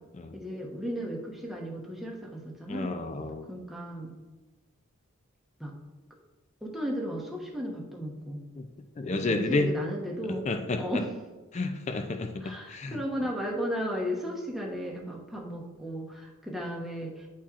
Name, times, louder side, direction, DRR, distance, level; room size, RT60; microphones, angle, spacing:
voice 1, 0.3-2.9 3.5-4.1 5.6-5.7 6.6-8.4 9.2-10.5 10.8-11.1 12.4-17.3, equal, ahead, -3 dB, 0.9 m, -35 dB
voice 2, 2.7-3.5 8.6-8.7 9.0-9.7 10.5-11.0 11.5-13.0, left 3 dB, 30° left, 6 dB, 0.3 m, -31 dB
10.0 x 4.2 x 2.4 m, 1.2 s
head